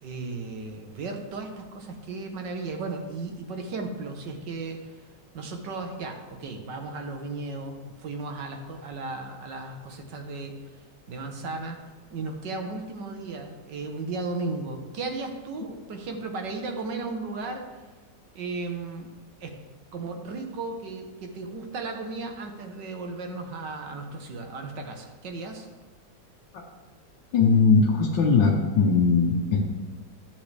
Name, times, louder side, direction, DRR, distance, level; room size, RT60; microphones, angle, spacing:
voice 1, 0.0-5.0 5.3-10.7 11.1-11.8 12.1-17.7 18.3-19.1 19.4-19.6 19.9-25.7, right 3 dB, 70° right, 4 dB, 1.7 m, -35 dB
voice 2, 27.3-29.6, left 4 dB, 80° left, -2 dB, 1.7 m, -20 dB
13.0 x 7.2 x 3.3 m, 1.3 s
omnidirectional pair, 2.0 m